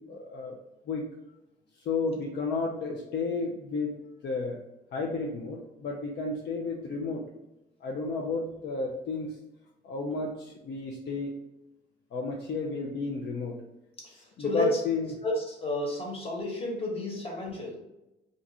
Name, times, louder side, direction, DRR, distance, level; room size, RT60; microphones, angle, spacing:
voice 1, 0.1-0.6 0.9-1.0 1.8-4.0 4.2-4.6 4.9-7.2 7.8-9.4 9.8-11.3 12.1-13.6 14.1-15.1, left 3 dB, 60° left, -1 dB, 0.5 m, -32 dB
voice 2, 14.4-14.8 15.2-17.7, left 1 dB, 30° left, -2 dB, 1.2 m, -31 dB
2.5 x 2.4 x 4.0 m, 0.93 s
cardioid pair, 90°, 20 cm